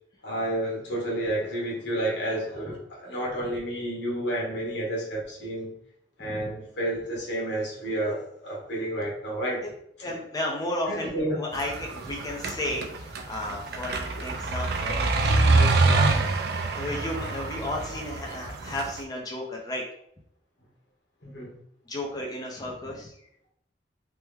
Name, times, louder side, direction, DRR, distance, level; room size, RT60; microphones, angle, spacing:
voice 1, 0.2-5.7 6.2-9.6 10.0-10.2 10.9-11.3 21.2-21.5, right 1 dB, 90° left, -3 dB, 1.2 m, -30 dB
voice 2, 10.0-16.2 16.5-19.8 21.9-23.1, left 1 dB, 20° left, -1 dB, 0.5 m, -34 dB
sound 1, 11.5-19.0, right 3 dB, 65° right, 0.4 m, -25 dB
3.3 x 2.1 x 3.3 m, 0.71 s
head